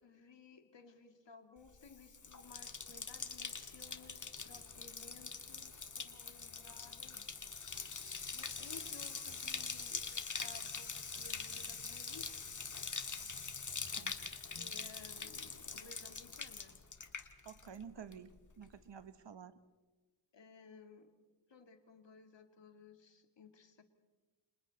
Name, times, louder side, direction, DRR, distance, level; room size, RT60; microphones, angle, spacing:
voice 1, 0.0-7.2 8.3-10.1 10.3-12.4 13.2-13.3 14.5-16.8 18.0-18.1 20.3-21.1 21.5-23.8, left 4 dB, 75° left, 6 dB, 2.3 m, -58 dB
Bathtub (filling or washing), 1.7-17.8 18.1-18.6, left 4 dB, 45° left, 1.6 m, -44 dB
voice 2, 17.4-18.3 18.6-19.5, right 7 dB, 75° right, 12 dB, 1.3 m, -50 dB
30.0 x 26.5 x 4.1 m, 1.3 s
wide cardioid pair, 90°, 43 cm